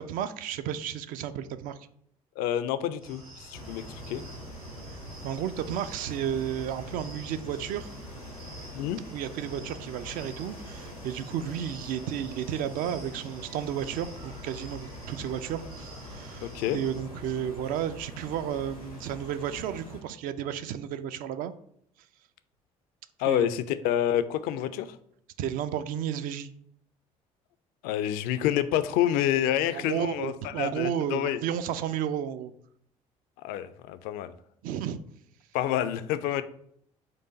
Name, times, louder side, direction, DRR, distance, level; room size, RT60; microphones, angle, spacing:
voice 1, 0.0-1.8 5.2-7.9 9.1-21.5 23.3-23.6 25.4-26.5 29.7-32.5 34.6-35.0, right 9 dB, 50° right, 11 dB, 0.4 m, -32 dB
voice 2, 2.4-4.2 8.7-9.0 16.4-16.8 23.2-25.0 27.8-31.4 33.4-34.3 35.5-36.4, left 11 dB, 55° left, 12 dB, 0.4 m, -28 dB
sound 1, 3.0-17.0, right 2 dB, 80° right, 1.6 m, -49 dB
sound 2, 3.5-20.0, left 1 dB, 90° left, 0.8 m, -44 dB
4.5 x 2.5 x 4.0 m, 0.68 s
figure-of-eight pair, 55°, 18 cm